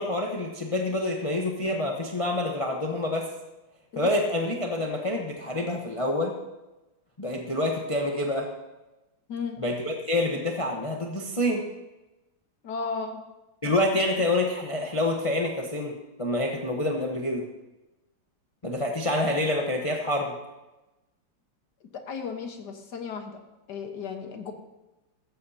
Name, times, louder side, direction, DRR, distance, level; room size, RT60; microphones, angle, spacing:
voice 1, 0.0-3.3 4.0-6.4 7.2-8.5 9.6-11.7 13.6-15.9 16.2-17.4 18.6-20.3, left 1 dB, 20° left, 1 dB, 0.9 m, -27 dB
voice 2, 12.6-13.2 22.1-23.4 23.7-24.5, left 5 dB, 65° left, 5 dB, 1.8 m, -34 dB
15.5 x 14.0 x 2.8 m, 1.0 s
omnidirectional pair, 2.1 m